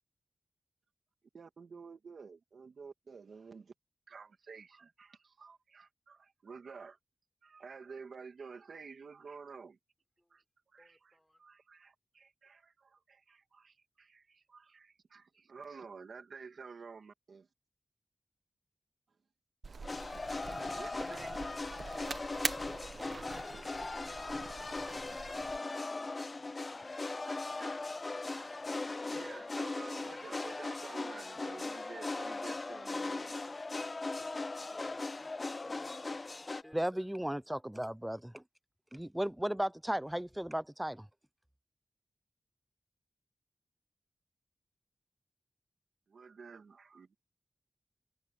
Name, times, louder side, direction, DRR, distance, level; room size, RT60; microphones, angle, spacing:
voice 1, 1.3-3.7 4.1-7.0 7.4-9.8 10.3-17.5 20.1-22.8 23.1-23.5 23.8-23.9 26.9-33.6 46.1-47.2, right 5 dB, 90° right, 2.4 m, -52 dB
voice 2, 10.8-11.4 22.5-23.4 34.7-35.3 35.6-36.8, left 1 dB, 10° left, 4.4 m, -56 dB
sound 1, 19.6-25.6, right 4 dB, 70° right, 1.0 m, -43 dB
sound 2, 19.8-36.6, left 3 dB, 45° left, 0.4 m, -39 dB
voice 3, 36.7-38.4 38.9-41.1, equal, 10° right, 0.6 m, -35 dB
wide cardioid pair, 65°, 0 cm